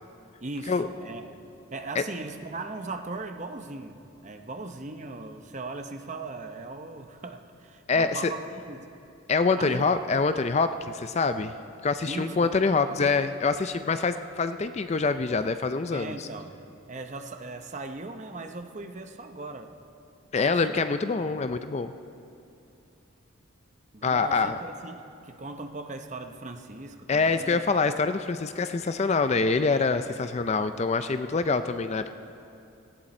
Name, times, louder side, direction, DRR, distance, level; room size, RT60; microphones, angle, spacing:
voice 1, 0.4-1.4 1.7-8.4 8.7-8.9 9.6-9.9 12.1-12.6 15.9-16.6 16.9-19.7 20.3-21.3 23.9-27.6, right 3 dB, 35° right, 6 dB, 0.7 m, -39 dB
voice 2, 7.9-8.3 9.3-11.5 11.8-16.1 20.3-21.9 24.0-24.5 27.1-32.1, left 4 dB, 30° left, 10 dB, 0.4 m, -25 dB
17.5 x 15.5 x 4.3 m, 2.6 s
head